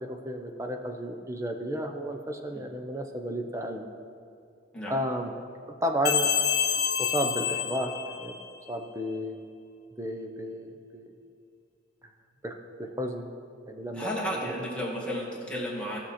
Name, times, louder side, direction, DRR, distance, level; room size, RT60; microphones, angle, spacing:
voice 1, 0.0-3.9 4.9-5.3 5.8-6.3 7.0-8.3 8.7-9.4 10.0-11.1 12.4-12.5 12.8-13.3 13.7-14.1 14.4-14.5, equal, 15° right, 4 dB, 0.8 m, -32 dB
sound 1, 6.0-8.6, left 8 dB, 55° left, 1.0 m, -28 dB
voice 2, 13.9-16.0, equal, 5° left, -5 dB, 2.1 m, -33 dB
17.0 x 6.2 x 4.3 m, 2.4 s
head